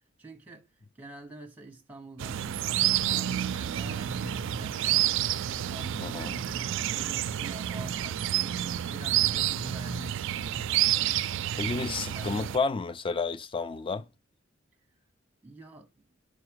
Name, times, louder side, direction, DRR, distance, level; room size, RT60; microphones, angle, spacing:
voice 1, 0.2-0.6 1.0-5.1 5.4-10.8 11.6-12.6 15.4-16.1, right 1 dB, 10° right, 0.9 m, -45 dB
sound 1, 2.2-12.6, right 12 dB, 65° right, 0.3 m, -29 dB
voice 2, 6.0-6.4 11.6-14.1, left 4 dB, 25° left, 0.4 m, -31 dB
5.1 x 4.8 x 6.2 m
head